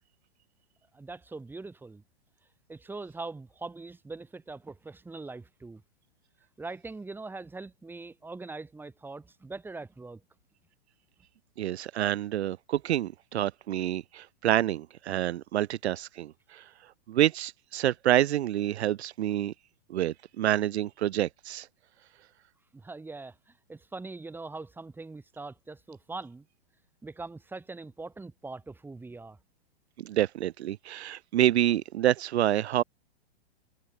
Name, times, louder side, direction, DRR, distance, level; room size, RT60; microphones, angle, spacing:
voice 1, 0.9-2.0 2.7-5.8 6.6-10.2 22.7-26.5 27.0-29.4, right 3 dB, 5° right, 5.4 m, -42 dB
voice 2, 11.6-16.6 17.1-19.5 19.9-21.7 30.0-32.8, right 12 dB, 80° right, 0.6 m, -27 dB
hypercardioid pair, 150°, 32 cm